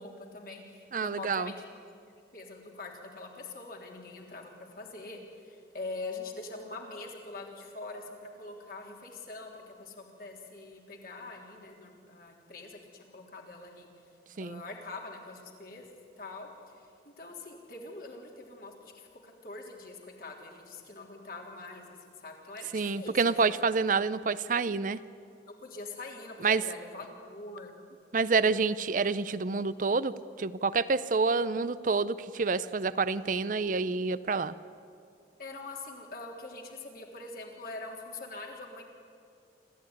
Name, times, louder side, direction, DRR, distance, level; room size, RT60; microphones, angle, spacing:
voice 1, 0.0-1.6 2.3-13.9 14.4-15.9 16.2-22.0 22.2-23.4 25.5-27.7 35.4-38.8, left 3 dB, 55° left, 0 dB, 3.4 m, -44 dB
voice 2, 0.9-1.5 14.4-14.6 22.7-25.0 26.4-26.6 28.1-34.5, right 4 dB, 50° right, 15 dB, 0.6 m, -28 dB
27.0 x 14.0 x 9.6 m, 2.4 s
head